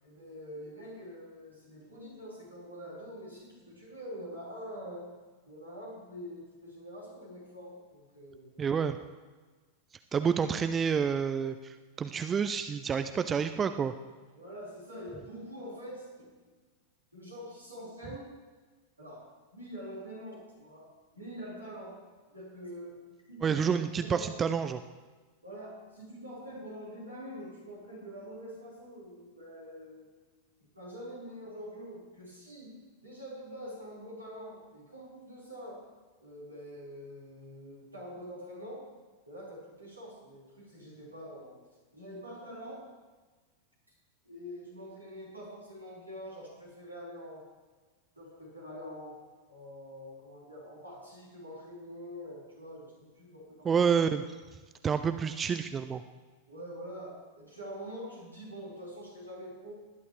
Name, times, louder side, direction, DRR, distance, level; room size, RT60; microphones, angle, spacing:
voice 1, 0.0-5.1 5.4-8.5 14.3-16.5 17.1-18.4 19.0-22.0 22.3-23.6 24.0-24.3 25.4-30.1 30.7-35.8 36.2-38.8 39.2-41.6 41.9-42.9 43.9-44.0 44.2-47.5 48.1-49.2 49.5-53.7 56.5-59.7, equal, 85° right, -5 dB, 4.7 m, -45 dB
voice 2, 8.6-9.0 10.1-13.9 23.4-24.8 53.6-54.2 54.8-56.0, right 6 dB, 20° right, 10 dB, 0.5 m, -29 dB
19.5 x 11.0 x 3.3 m, 1.3 s
figure-of-eight pair, 90°, 0 cm